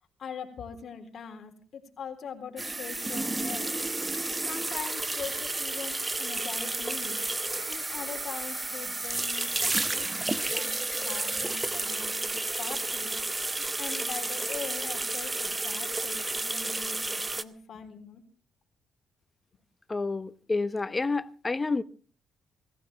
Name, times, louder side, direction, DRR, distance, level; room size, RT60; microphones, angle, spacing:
voice 1, 0.2-3.7 4.5-7.2 7.7-13.2 13.8-18.2, left 6 dB, 55° left, 3.7 m, -42 dB
sound 1, 2.6-17.4, right 2 dB, 20° right, 1.0 m, -31 dB
voice 2, 19.9-21.8, left 3 dB, 25° left, 1.0 m, -29 dB
18.5 x 15.0 x 4.6 m
cardioid pair, 90°, 0 cm